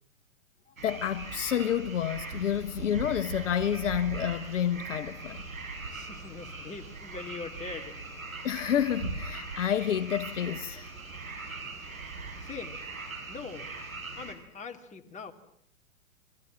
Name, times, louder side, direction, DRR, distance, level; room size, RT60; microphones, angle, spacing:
voice 1, 0.8-5.4 8.4-10.9, left 9 dB, 65° left, 1.3 m, -29 dB
sound 1, 0.8-14.3, right 3 dB, 90° right, 6.8 m, -40 dB
voice 2, 5.9-8.0 12.4-12.8 13.3-13.7 14.2-15.3, left 5 dB, 15° left, 2.7 m, -42 dB
29.5 x 23.0 x 7.5 m
hypercardioid pair, 110°, 40 cm